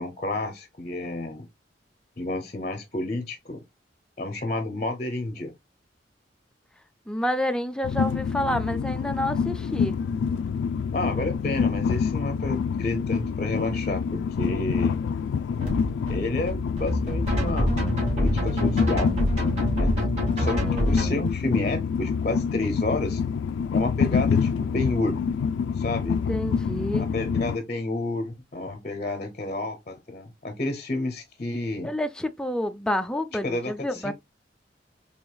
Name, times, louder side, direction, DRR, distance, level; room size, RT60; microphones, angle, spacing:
voice 1, 0.0-1.5 2.2-3.6 4.2-5.5 10.9-15.0 16.1-17.7 18.2-19.1 19.8-19.9 20.4-20.6 20.9-23.2 23.7-25.2 25.7-26.2 26.9-31.9 33.4-34.1, left 2 dB, 40° left, 0.7 m, -30 dB
voice 2, 7.1-10.0 20.4-21.2 26.3-27.1 31.8-34.1, left 1 dB, 5° left, 0.4 m, -29 dB
Train, 7.8-27.6, left 6 dB, 80° left, 0.3 m, -27 dB
sound 1, 15.6-21.1, equal, 40° right, 2.2 m, -26 dB
4.7 x 3.4 x 2.2 m
head